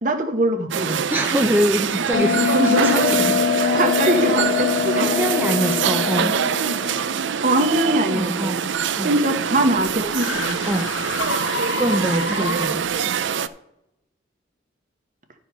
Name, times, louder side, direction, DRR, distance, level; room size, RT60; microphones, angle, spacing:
voice 1, 0.0-1.0 2.1-3.1 3.6-5.1 7.3-8.6 9.0-10.6 12.3-12.5, right 1 dB, 45° right, 6 dB, 1.1 m, -22 dB
sound 1, 0.7-13.5, right 7 dB, 70° right, 0.4 m, -24 dB
voice 2, 1.1-3.3 4.9-6.4 6.9-7.2 8.1-9.2 10.6-10.9 11.8-12.8, equal, 10° right, 3 dB, 0.5 m, -24 dB
Bell, 2.1-7.2, left 7 dB, 45° left, 0.3 m, -23 dB
sound 2, 8.7-13.0, left 4 dB, 80° left, 0.8 m, -31 dB
12.0 x 4.8 x 5.6 m, 0.85 s
head